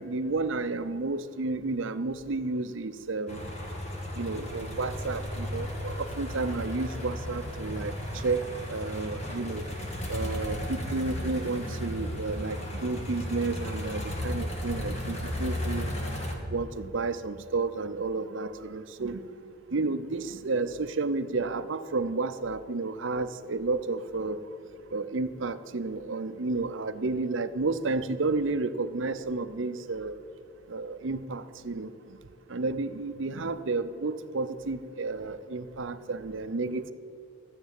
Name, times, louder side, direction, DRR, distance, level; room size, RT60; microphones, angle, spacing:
voice 1, 0.0-3.5 4.2-7.9 8.2-8.4 8.7-9.7 10.1-15.9 16.5-19.2 19.7-24.4 24.9-30.1 30.7-31.9 32.5-36.9, right 3 dB, 65° right, 11 dB, 0.6 m, -31 dB
sound 1, 3.3-16.3, left 1 dB, 35° left, 1.8 m, -34 dB
13.5 x 6.8 x 8.9 m, 2.6 s
head